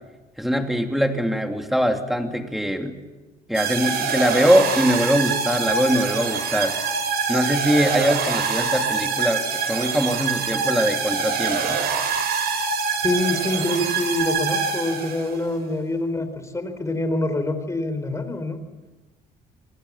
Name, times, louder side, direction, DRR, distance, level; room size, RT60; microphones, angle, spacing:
voice 1, 0.4-3.0 3.5-6.8 7.3-11.8, equal, ahead, 4 dB, 2.9 m, -22 dB
sound 1, 3.5-15.4, right 5 dB, 70° right, 6.3 m, -25 dB
voice 2, 13.0-18.6, left 1 dB, 15° left, 9 dB, 4.0 m, -25 dB
28.0 x 21.5 x 7.4 m, 1.2 s
cardioid pair, 110°, 17 cm